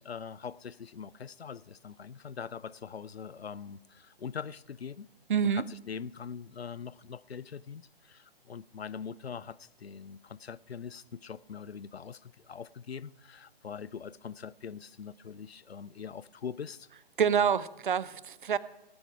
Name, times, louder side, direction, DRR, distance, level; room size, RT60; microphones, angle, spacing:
voice 1, 0.0-5.1 5.5-16.9, left 7 dB, 85° left, 0.5 m, -42 dB
voice 2, 5.3-5.6 17.2-18.6, right 7 dB, 55° right, 0.6 m, -27 dB
18.5 x 8.0 x 5.8 m
figure-of-eight pair, 130°, 30 cm